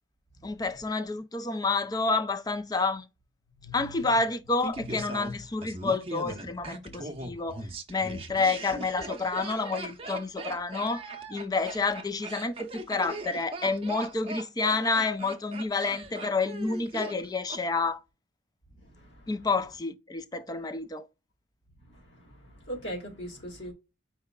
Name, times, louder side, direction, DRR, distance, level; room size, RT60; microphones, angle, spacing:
voice 1, 0.4-3.1 3.7-11.0 11.3-18.0 19.3-21.1, left 3 dB, 20° left, 0.4 m, -29 dB
voice 2, 3.6-4.1 5.2-5.3 6.9-7.0 18.8-19.4 21.8-23.7, equal, 70° left, 1.9 m, -41 dB
Laughter, 4.6-17.6 17.9-18.0, right 2 dB, 30° right, 0.7 m, -39 dB
4.7 x 4.1 x 2.3 m
head